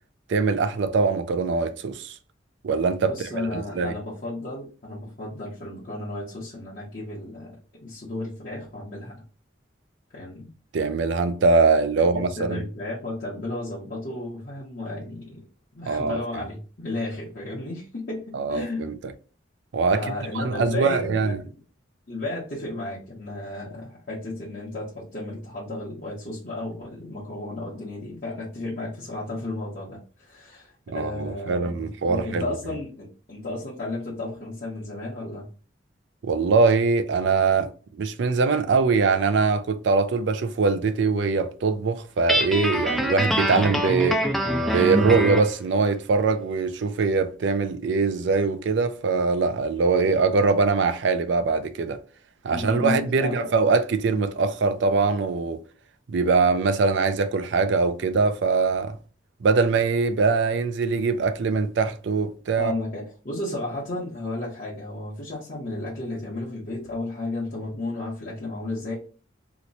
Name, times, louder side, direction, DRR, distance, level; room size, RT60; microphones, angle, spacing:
voice 1, 0.3-2.1 2.6-3.9 10.7-12.6 15.8-16.4 18.3-19.0 19.7-20.0 20.3-21.4 30.9-32.4 36.2-44.2 44.7-52.0 52.4-55.6 56.1-59.0 59.4-62.7, right 4 dB, 65° right, 0.4 m, -22 dB
voice 2, 3.0-7.6 7.8-9.2 10.1-10.5 12.0-15.4 15.7-18.9 19.9-21.2 22.1-35.5 52.5-53.5 62.6-68.9, left 2 dB, 50° left, 0.9 m, -33 dB
Guitar, 42.3-45.5, equal, ahead, 0.4 m, -24 dB
2.9 x 2.1 x 3.9 m
head